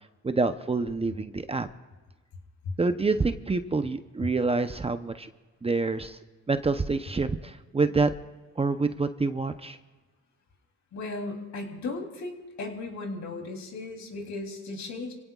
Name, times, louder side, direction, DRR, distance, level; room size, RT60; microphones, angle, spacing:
voice 1, 0.2-1.7 2.8-5.3 5.6-6.2 6.5-8.1 8.6-9.8, right 3 dB, 20° right, 9 dB, 0.7 m, -27 dB
voice 2, 10.9-15.1, left 3 dB, 65° left, 2 dB, 3.2 m, -36 dB
27.0 x 17.5 x 2.4 m, 1.2 s
cardioid pair, 90°, 30 cm